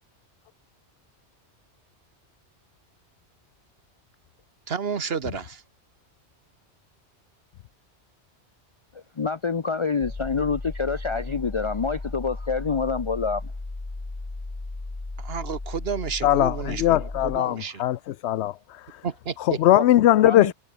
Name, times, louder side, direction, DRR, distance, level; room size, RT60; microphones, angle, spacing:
voice 1, 4.7-5.6 15.2-17.0 17.2-17.8 19.0-19.6, right 6 dB, 60° right, 1.5 m, -31 dB
voice 2, 8.9-13.5 19.7-19.8 20.2-20.5, left 5 dB, 35° left, 0.5 m, -27 dB
sound 1, 10.0-17.4, left 2 dB, 20° left, 1.3 m, -35 dB
voice 3, 16.2-19.0 19.4-20.5, left 13 dB, 75° left, 0.8 m, -20 dB
omnidirectional pair, 1.2 m